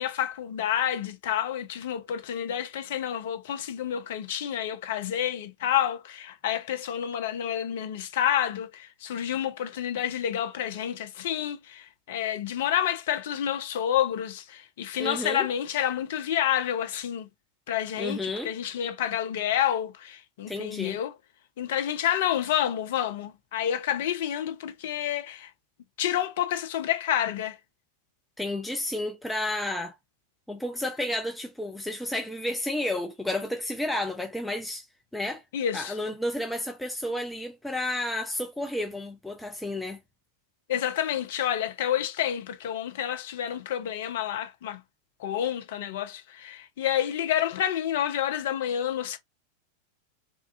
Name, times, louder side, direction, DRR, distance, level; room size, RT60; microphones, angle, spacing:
voice 1, 0.0-17.3 17.7-21.1 21.6-25.5 26.0-27.6 35.5-35.9 40.7-44.8 45.2-49.2, left 10 dB, 55° left, 0.6 m, -29 dB
voice 2, 15.0-15.5 18.0-18.5 20.5-21.0 28.4-29.9 30.5-34.9 35.1-35.4 35.7-40.0, left 1 dB, 5° left, 0.5 m, -31 dB
3.6 x 2.4 x 2.5 m
figure-of-eight pair, 90°, 0 cm